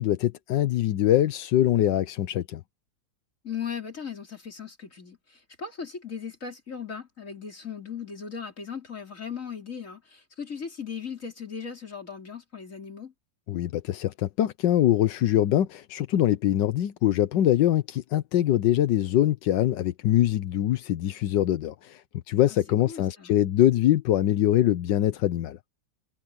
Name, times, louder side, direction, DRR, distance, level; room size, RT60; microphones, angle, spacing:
voice 1, 0.0-2.6 13.5-25.6, left 12 dB, 85° left, 1.5 m, -23 dB
voice 2, 3.4-13.1 22.5-22.6 22.9-23.3, left 6 dB, 45° left, 4.4 m, -38 dB
omnidirectional pair, 1.9 m